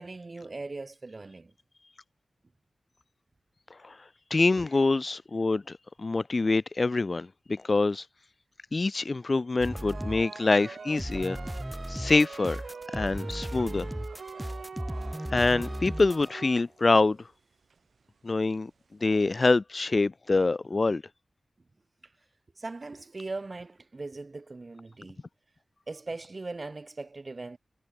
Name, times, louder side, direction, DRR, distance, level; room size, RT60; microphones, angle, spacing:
voice 1, 0.0-1.5 22.6-25.2 25.9-27.6, right 3 dB, 35° right, 3.2 m, -39 dB
voice 2, 4.3-8.1 8.7-11.4 11.9-12.6 12.9-13.9 15.3-17.3 18.2-18.7 19.0-21.0, left 3 dB, 35° left, 0.6 m, -25 dB
sound 1, 9.6-10.3 10.5-16.3, equal, 5° right, 3.7 m, -36 dB
sound 2, 9.7-17.1 17.7-17.8 18.3-18.4 19.0-19.1 19.3-19.4, right 5 dB, 70° right, 0.9 m, -44 dB
wide cardioid pair, 135°, 0 cm